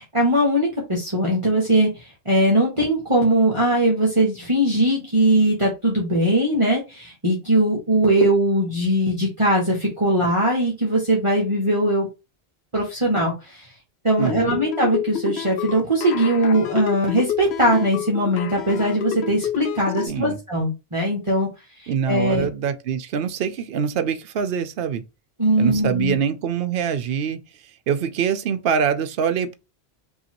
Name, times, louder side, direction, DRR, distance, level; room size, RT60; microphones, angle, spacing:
voice 1, 0.0-12.1 12.7-13.7 14.0-21.5 21.8-22.5 25.4-26.2, right 1 dB, 30° right, 1.3 m, -20 dB
sound 1, 14.2-20.1, left 11 dB, 75° left, 0.9 m, -29 dB
voice 2, 14.2-14.6 20.1-20.4 21.9-25.0 25.6-27.4 27.9-29.6, right 7 dB, 70° right, 0.8 m, -24 dB
5.3 x 2.8 x 2.9 m
omnidirectional pair, 1.1 m